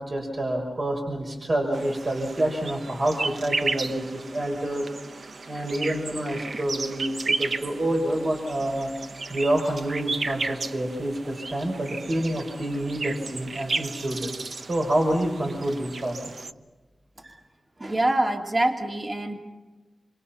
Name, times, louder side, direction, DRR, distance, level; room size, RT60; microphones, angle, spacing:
voice 1, 0.0-4.9 5.5-8.9 9.3-14.3 14.7-16.3, right 1 dB, 60° right, 1 dB, 5.7 m, -27 dB
sound 1, 1.7-16.5, right 3 dB, 75° right, 0.9 m, -34 dB
voice 2, 17.8-19.4, right 1 dB, 40° right, 2 dB, 2.9 m, -25 dB
27.5 x 27.5 x 5.8 m, 1.2 s
cardioid pair, 50°, 0 cm